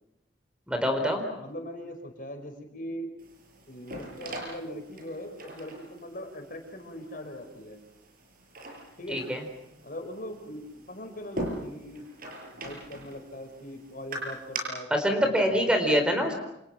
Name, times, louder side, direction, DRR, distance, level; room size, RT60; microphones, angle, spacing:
voice 1, 0.7-1.2 9.1-9.4 14.9-16.3, equal, 5° right, 4 dB, 4.3 m, -25 dB
voice 2, 1.4-3.1 3.7-7.8 9.0-9.2 9.8-12.0 12.6-14.9 15.2-15.7, equal, 50° left, 5 dB, 5.3 m, -40 dB
sound 1, 3.2-14.6, right 2 dB, 55° right, 7.4 m, -42 dB
29.5 x 28.5 x 6.1 m, 0.84 s
head